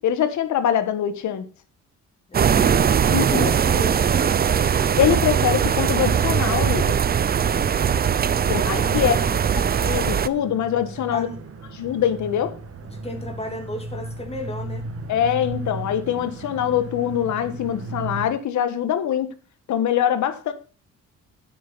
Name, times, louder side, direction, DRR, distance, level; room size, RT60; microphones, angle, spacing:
voice 1, 0.0-1.4 3.1-3.5 5.0-7.0 8.5-9.3 9.8-11.3 11.7-12.5 15.1-19.3 19.7-20.5, left 9 dB, 70° left, 1.4 m, -23 dB
voice 2, 2.3-4.5 8.4-9.9 11.1-11.4 12.8-14.9, left 1 dB, 20° left, 2.9 m, -35 dB
sound 1, 2.3-10.3, right 7 dB, 30° right, 0.5 m, -20 dB
sound 2, 2.9-18.3, right 2 dB, 50° right, 1.8 m, -37 dB
9.8 x 8.6 x 4.1 m
cardioid pair, 90°, 30 cm